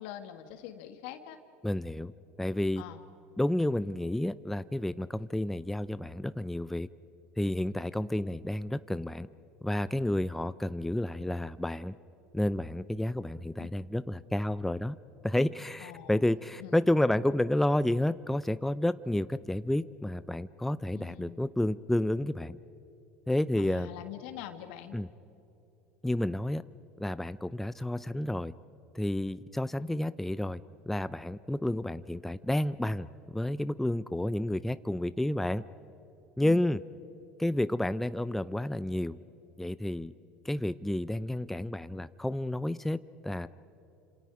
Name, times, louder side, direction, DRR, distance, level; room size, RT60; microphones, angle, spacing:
voice 1, 0.0-1.4 2.8-3.0 13.6-13.7 15.8-16.2 16.6-16.7 20.9-21.5 23.6-25.0 36.4-36.7, left 12 dB, 75° left, 8 dB, 2.1 m, -44 dB
voice 2, 1.6-2.1 2.4-2.8 3.4-6.9 7.4-9.3 9.6-12.0 12.3-15.0 15.2-22.6 23.3-23.9 24.9-25.1 26.0-26.6 27.0-28.5 28.9-30.6 30.9-33.1 33.3-35.6 36.4-36.8 37.4-39.2 39.6-40.1 40.4-43.0 43.2-43.5, left 1 dB, 5° left, 14 dB, 0.6 m, -30 dB
29.5 x 27.0 x 4.9 m, 2.9 s
hypercardioid pair, 85°, 6 cm